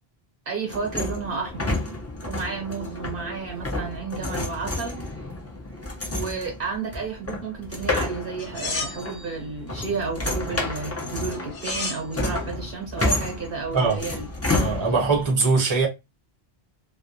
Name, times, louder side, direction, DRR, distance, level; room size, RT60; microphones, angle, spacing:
voice 1, 0.5-1.7 2.2-5.0 6.1-14.3, right 5 dB, 60° right, 0.9 m, -32 dB
sound 1, 0.7-15.3, left 2 dB, 20° left, 0.4 m, -30 dB
sound 2, 8.4-9.3 11.3-12.1 13.8-14.0, left 3 dB, 75° left, 1.0 m, -33 dB
voice 2, 14.5-15.9, right 4 dB, 30° right, 0.8 m, -21 dB
2.2 x 2.2 x 2.6 m
omnidirectional pair, 1.1 m